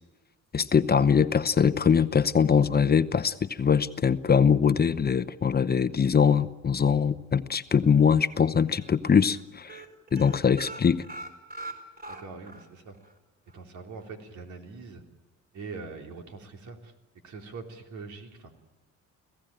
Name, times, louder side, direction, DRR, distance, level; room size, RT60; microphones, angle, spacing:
voice 1, 0.5-9.8 10.1-11.0, left 6 dB, 30° left, 13 dB, 0.8 m, -22 dB
sound 1, 7.8-8.4 8.7-8.9 9.2-9.4 9.7-12.7 13.0-13.1 13.5-13.6, right 2 dB, 30° right, 4.5 m, -42 dB
voice 2, 12.1-13.0 13.5-15.0 15.5-16.9 17.2-18.5, right 4 dB, 70° right, 3 dB, 3.6 m, -42 dB
25.5 x 16.5 x 9.0 m, 1.2 s
cardioid pair, 90°, 30 cm